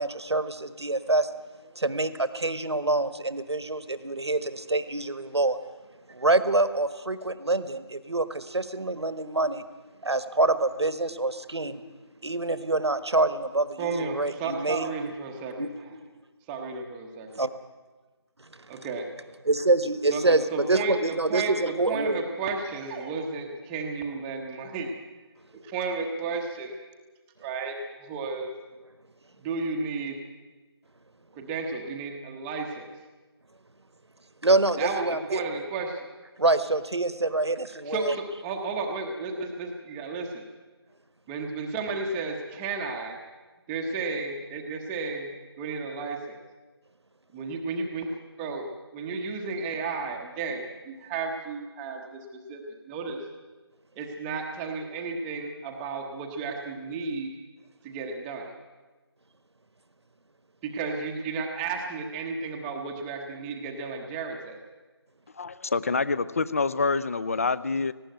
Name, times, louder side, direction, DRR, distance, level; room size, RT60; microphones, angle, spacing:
voice 1, 0.0-1.3 1.6-5.6 6.1-9.6 10.0-11.8 12.2-15.1 15.6-16.0 17.3-17.5 18.5-18.6 19.4-22.2 34.4-35.4 36.4-38.1, right 2 dB, 80° right, 12 dB, 1.4 m, -26 dB
voice 2, 13.8-15.7 16.5-17.4 18.7-19.2 20.1-24.9 25.6-26.7 27.4-28.5 29.4-30.2 31.4-32.9 34.8-36.1 37.9-40.4 41.3-43.2 43.7-45.3 45.6-46.4 47.3-53.2 54.0-57.3 57.8-58.5 60.6-64.6, right 4 dB, 5° right, 2 dB, 0.8 m, -33 dB
voice 3, 65.4-67.9, left 4 dB, 35° left, 17 dB, 0.6 m, -26 dB
18.5 x 16.0 x 9.1 m, 1.3 s
figure-of-eight pair, 165°, 14 cm